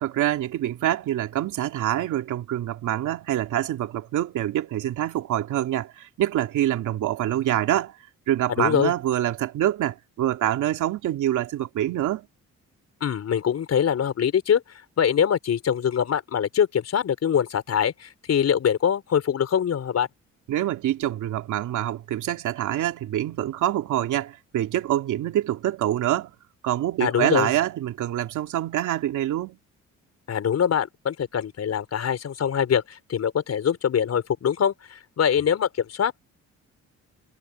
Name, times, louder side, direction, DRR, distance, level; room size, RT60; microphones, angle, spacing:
voice 1, 0.0-7.9 8.3-12.3 20.5-26.3 26.6-29.6, right 12 dB, 80° right, 2.7 m, -25 dB
voice 2, 8.6-8.9 13.0-14.6 15.0-20.1 27.0-27.5 30.3-36.1, left 8 dB, 55° left, 5.3 m, -23 dB
cardioid pair, 90°, 30 cm